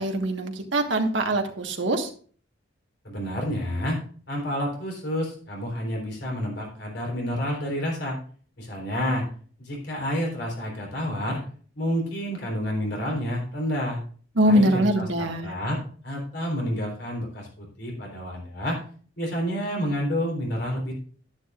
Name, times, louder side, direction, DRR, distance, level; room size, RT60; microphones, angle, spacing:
voice 1, 0.0-2.1 14.3-15.5, right 1 dB, 70° right, 4 dB, 1.5 m, -23 dB
voice 2, 3.0-4.0 4.3-8.2 8.6-9.2 9.6-11.4 11.8-14.0 14.5-18.8 19.2-20.9, equal, 60° left, 0 dB, 3.8 m, -29 dB
11.5 x 10.5 x 2.5 m, 0.43 s
head